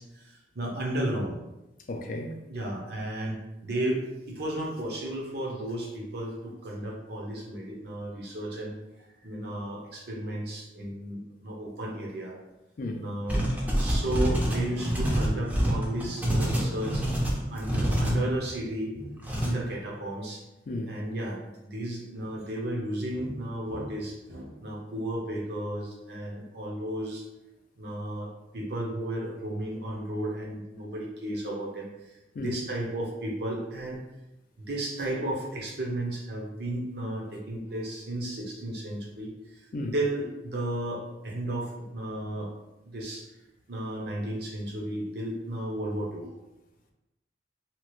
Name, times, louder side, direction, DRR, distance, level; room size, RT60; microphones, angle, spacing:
voice 1, 0.0-1.4 2.5-12.4 13.0-13.4 13.7-20.4 20.9-27.3 27.8-34.0 34.6-42.5 42.8-43.3 43.7-46.3, right 1 dB, 60° right, 0.7 m, -34 dB
voice 2, 1.9-2.4 12.8-13.0 20.7-21.0 32.4-32.5 39.7-39.9, left 1 dB, 50° left, 0.4 m, -33 dB
sound 1, 13.3-18.2 19.2-19.5, equal, 10° right, 0.5 m, -26 dB
2.9 x 2.3 x 3.0 m
head